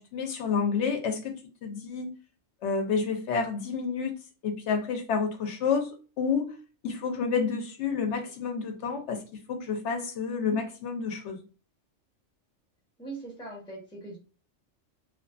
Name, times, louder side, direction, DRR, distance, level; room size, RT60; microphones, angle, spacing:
voice 1, 0.0-1.4 1.6-2.1 2.6-4.1 4.4-6.5 6.8-9.2 9.5-11.4, left 5 dB, 70° left, 0.8 m, -29 dB
voice 2, 13.0-14.2, right 3 dB, 5° left, 0.7 m, -41 dB
2.5 x 2.4 x 2.3 m
omnidirectional pair, 1.3 m